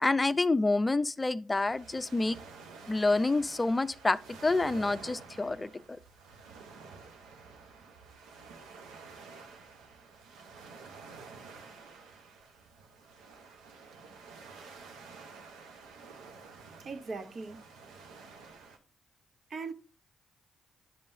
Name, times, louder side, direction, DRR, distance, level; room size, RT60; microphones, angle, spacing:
voice 1, 0.0-2.4 2.9-5.7, left 2 dB, 25° left, 0.4 m, -28 dB
sound 1, 1.5-18.8, right 4 dB, 90° right, 0.9 m, -50 dB
voice 2, 14.5-15.0 15.5-16.0 16.8-17.7 19.5-19.7, right 4 dB, 55° right, 0.8 m, -42 dB
9.9 x 5.3 x 2.7 m
supercardioid pair, 55°, 0 cm